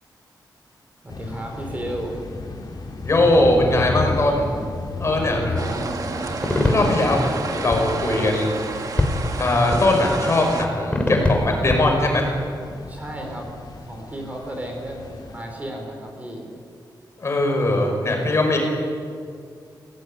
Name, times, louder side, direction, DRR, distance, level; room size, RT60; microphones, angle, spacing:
voice 1, 1.0-2.2 5.0-5.9 6.7-6.9 12.9-13.5 13.8-16.5, right 1 dB, 20° right, 2 dB, 4.7 m, -33 dB
sound 1, 1.1-15.4, left 3 dB, 60° left, 3.9 m, -34 dB
voice 2, 3.0-4.5 5.0-5.5 6.6-8.6 9.4-12.3 17.2-18.6, left 2 dB, 40° left, 2 dB, 5.5 m, -20 dB
sound 2, 5.6-10.7, right 3 dB, 50° right, 2.3 m, -30 dB
sound 3, 6.4-12.1, left 2 dB, 15° left, 3.6 m, -24 dB
27.5 x 18.0 x 10.0 m, 2.2 s
wide cardioid pair, 165°, 8 cm